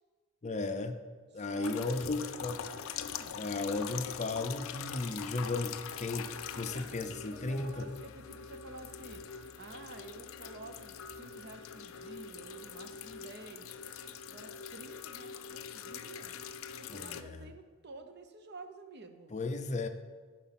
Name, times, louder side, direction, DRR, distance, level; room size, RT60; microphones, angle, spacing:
voice 1, 0.4-0.9 1.3-2.5 3.3-7.9 16.9-17.4 19.3-19.9, left 3 dB, 35° left, 7 dB, 0.6 m, -35 dB
voice 2, 1.3-3.4 6.5-13.8 14.3-16.3 16.7-19.3, right 3 dB, 55° right, 7 dB, 0.8 m, -51 dB
sound 1, 1.6-17.2, left 7 dB, 80° left, 0.5 m, -43 dB
sound 2, 1.7-17.1, right 1 dB, 15° left, 0.9 m, -62 dB
9.8 x 4.5 x 5.9 m, 1.5 s
head